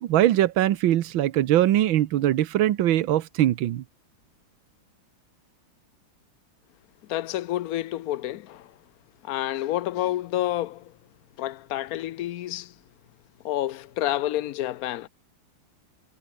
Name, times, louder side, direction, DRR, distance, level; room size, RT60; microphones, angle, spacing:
voice 1, 0.0-3.8, right 13 dB, 85° right, 1.7 m, -21 dB
voice 2, 7.1-8.8 9.2-10.9 11.4-12.7 13.4-15.1, left 14 dB, 70° left, 0.9 m, -29 dB
omnidirectional pair, 2.1 m